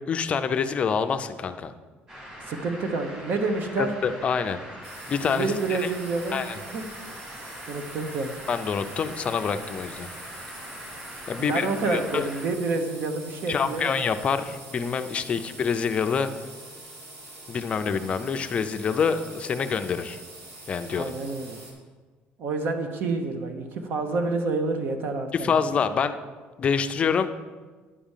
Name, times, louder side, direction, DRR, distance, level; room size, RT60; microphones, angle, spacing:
voice 1, 0.1-1.7 3.8-4.6 5.1-5.9 6.3-6.6 8.5-10.1 11.3-12.3 13.5-16.3 17.5-20.2 20.7-21.0 25.3-26.2 26.6-27.3, left 6 dB, 30° left, 8 dB, 0.5 m, -26 dB
sound 1, 2.1-12.5, equal, 20° right, 2.7 m, -42 dB
voice 2, 2.5-3.9 5.4-6.8 7.3-8.3 11.4-13.9 20.9-21.6 22.4-25.5, right 3 dB, 55° right, 6 dB, 1.1 m, -28 dB
sound 2, 4.8-21.7, right 2 dB, 85° right, 2.8 m, -44 dB
10.0 x 5.0 x 7.3 m, 1.4 s
cardioid pair, 165°, 4 cm